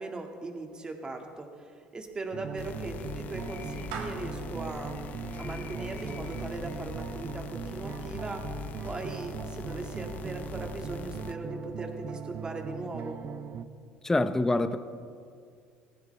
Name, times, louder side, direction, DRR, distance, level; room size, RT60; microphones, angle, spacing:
voice 1, 0.0-5.0 5.4-8.4 8.8-13.2, right 2 dB, 25° right, 3 dB, 2.0 m, -39 dB
Clapping / Meow, 2.0-8.4, right 5 dB, 90° right, 1.8 m, -48 dB
sound 1, 2.3-13.7, right 6 dB, 50° right, 0.7 m, -40 dB
sound 2, 2.6-11.3, left 7 dB, 55° left, 0.7 m, -42 dB
voice 2, 14.0-14.8, left 2 dB, 15° left, 11 dB, 0.8 m, -25 dB
19.0 x 15.5 x 3.4 m, 2.2 s
supercardioid pair, 90°, 3 cm